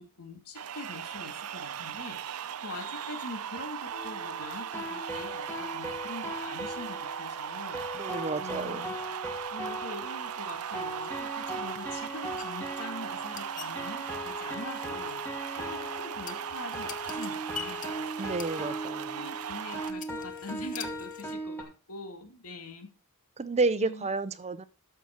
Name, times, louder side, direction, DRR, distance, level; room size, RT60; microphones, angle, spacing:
voice 1, 0.0-7.8 8.4-8.9 9.5-15.3 15.5-18.7 19.1-22.9 23.8-24.1, left 2 dB, 85° left, 6 dB, 2.1 m, -44 dB
sound 1, 0.5-19.9, right 8 dB, 85° right, 0.6 m, -38 dB
sound 2, 3.9-21.6, equal, 10° left, 1.7 m, -40 dB
voice 2, 7.9-8.8 18.2-19.2 23.4-24.6, right 3 dB, 30° right, 14 dB, 0.6 m, -31 dB
sound 3, 10.2-21.3, left 7 dB, 35° left, 0.9 m, -48 dB
13.0 x 5.9 x 4.3 m, 0.32 s
head